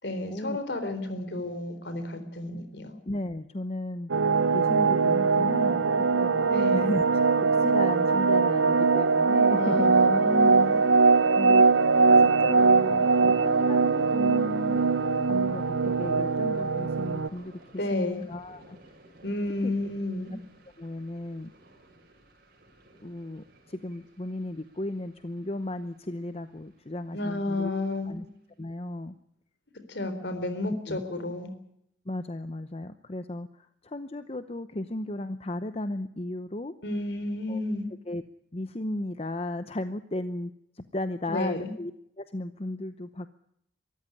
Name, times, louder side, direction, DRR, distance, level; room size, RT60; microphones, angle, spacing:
voice 1, 0.0-2.9 6.5-6.9 9.5-10.8 17.8-18.2 19.2-20.3 27.1-28.2 29.9-31.5 36.8-37.9 41.3-41.7, left 2 dB, 60° left, 9 dB, 3.8 m, -31 dB
voice 2, 3.1-4.1 4.5-9.9 11.3-11.6 12.2-14.8 15.3-17.6 17.9-18.8 19.6-19.7 20.8-21.5 23.0-27.7 28.1-28.3 28.6-29.2 30.9-31.0 32.1-36.7 37.5-37.6 38.1-38.2 38.5-41.9 42.2-43.3, left 1 dB, 30° left, 11 dB, 0.8 m, -35 dB
sound 1, 4.1-17.3, right 4 dB, 90° right, 0.8 m, -22 dB
Thunder, 10.4-26.2 26.5-27.1 27.5-27.8, right 1 dB, 50° right, 5.9 m, -49 dB
24.0 x 14.0 x 9.7 m, 0.75 s
head